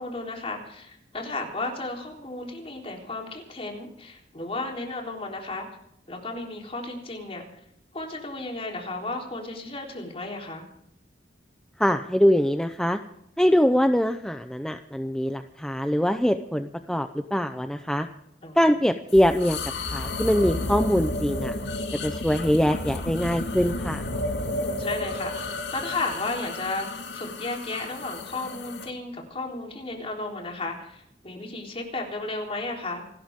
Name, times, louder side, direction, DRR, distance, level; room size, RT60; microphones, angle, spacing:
voice 1, 0.0-5.7 6.1-7.4 7.9-10.7 18.4-18.6 24.4-33.1, left 2 dB, 35° left, 1 dB, 3.7 m, -34 dB
voice 2, 11.8-13.0 13.4-18.1 18.6-19.6 19.9-21.6 22.0-24.0, equal, 5° left, 7 dB, 0.6 m, -23 dB
sound 1, 19.1-28.9, left 2 dB, 75° left, 2.2 m, -32 dB
27.5 x 13.0 x 3.7 m, 0.77 s
head